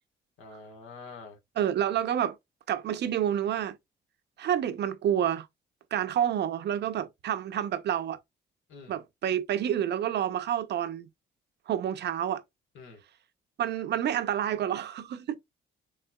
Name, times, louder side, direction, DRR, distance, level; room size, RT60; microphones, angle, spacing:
voice 1, 0.4-1.4 8.7-9.0 12.7-13.0, left 4 dB, 80° left, 1.4 m, -46 dB
voice 2, 1.6-2.4 2.7-3.8 4.4-5.5 5.9-8.2 8.9-11.1 11.7-12.4 13.6-15.4, right 10 dB, 60° right, 0.6 m, -28 dB
3.7 x 3.2 x 2.2 m
cardioid pair, 90°, 20 cm